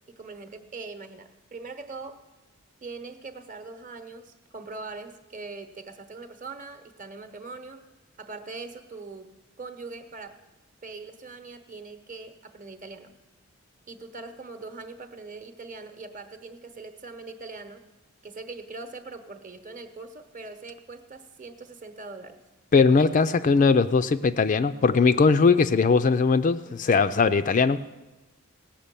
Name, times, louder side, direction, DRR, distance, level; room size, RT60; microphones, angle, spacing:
voice 1, 0.1-2.2 2.8-7.9 8.2-10.4 10.8-13.1 13.9-17.8 18.2-22.4 23.0-23.1 26.6-26.8, right 3 dB, 35° right, 8 dB, 0.9 m, -41 dB
voice 2, 22.7-27.8, left 4 dB, 35° left, 11 dB, 0.3 m, -20 dB
17.5 x 5.9 x 8.3 m, 1.1 s
head